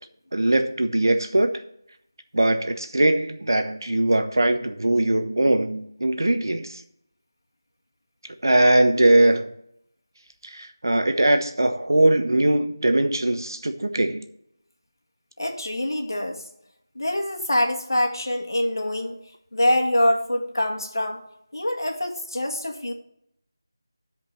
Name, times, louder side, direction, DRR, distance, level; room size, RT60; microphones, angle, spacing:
voice 1, 0.3-1.5 2.3-6.8 8.4-9.5 10.4-14.3, right 1 dB, 70° right, 8 dB, 1.1 m, -21 dB
voice 2, 15.4-16.5 17.0-19.2 19.5-21.2 21.5-22.9, left 1 dB, 75° left, 2 dB, 2.0 m, -24 dB
9.9 x 5.1 x 7.2 m, 0.74 s
figure-of-eight pair, 170°, 2 cm